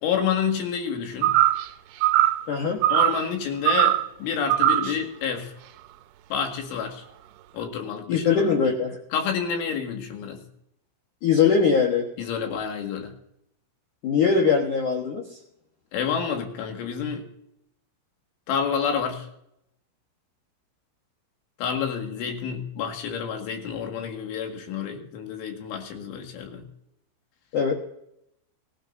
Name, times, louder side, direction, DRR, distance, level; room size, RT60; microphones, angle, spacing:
voice 1, 0.0-1.3 2.9-5.5 6.3-7.0 7.5-8.4 9.1-10.4 12.2-13.1 15.9-17.2 18.5-19.3 21.6-26.6, left 7 dB, 70° left, 3 dB, 4.3 m, -29 dB
sound 1, 1.2-1.7 2.0-2.5 2.8-3.2 3.7-4.1 4.5-4.9, right 14 dB, 85° right, 2.8 m, -20 dB
voice 2, 2.5-2.8 4.8-4.9 8.1-9.0 11.2-12.0 14.0-15.2 27.5-27.7, left 6 dB, 85° left, 1 dB, 1.7 m, -21 dB
23.0 x 12.5 x 2.7 m, 0.76 s
omnidirectional pair, 6.0 m